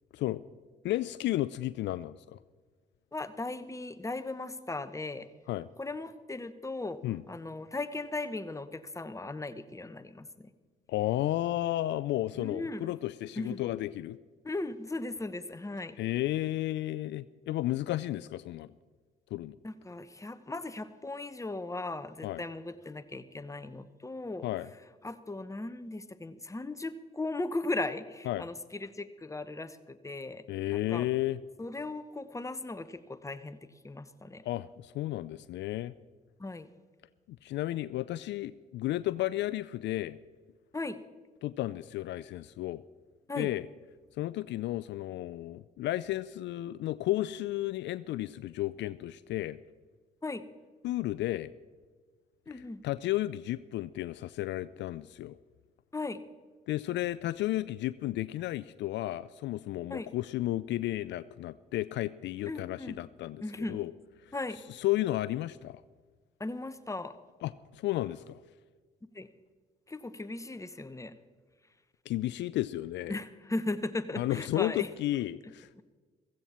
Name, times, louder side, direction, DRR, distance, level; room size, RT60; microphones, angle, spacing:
voice 1, 0.8-2.4 5.5-5.7 7.0-7.2 10.9-14.2 16.0-18.7 19.3-19.6 22.2-22.4 24.4-24.7 28.3-28.4 30.5-31.4 34.4-35.9 37.3-40.2 41.4-42.8 43.4-43.7 44.2-49.6 50.8-51.5 52.5-55.4 56.7-63.4 63.7-63.9 64.7-65.8 67.4-68.4 72.1-73.2 74.2-75.7, left 15 dB, 65° left, 16 dB, 0.4 m, -33 dB
voice 2, 3.1-5.3 5.8-7.0 7.3-10.5 12.4-12.9 13.4-13.6 14.4-16.0 19.6-24.5 25.0-31.1 31.6-34.4 36.4-36.7 40.7-41.0 43.3-43.5 50.2-50.4 52.5-52.8 55.9-56.2 59.9-60.1 62.5-63.0 63.4-63.8 64.3-64.6 66.4-67.2 69.1-69.3 69.9-71.2 73.1-74.9, left 2 dB, 15° left, 11 dB, 1.0 m, -37 dB
15.5 x 15.5 x 4.3 m, 1.4 s
hypercardioid pair, 55°, 20 cm